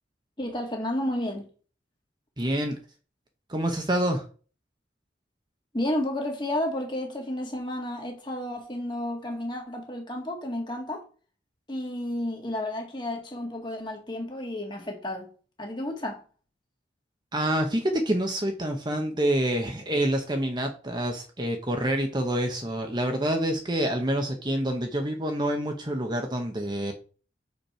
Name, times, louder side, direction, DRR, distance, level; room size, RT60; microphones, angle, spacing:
voice 1, 0.4-1.5 5.7-11.0 11.7-15.3 15.6-16.2, left 1 dB, 25° left, 1.9 m, -31 dB
voice 2, 2.4-2.8 3.5-4.2 17.3-26.9, right 1 dB, 25° right, 1.0 m, -27 dB
6.6 x 5.3 x 4.4 m
head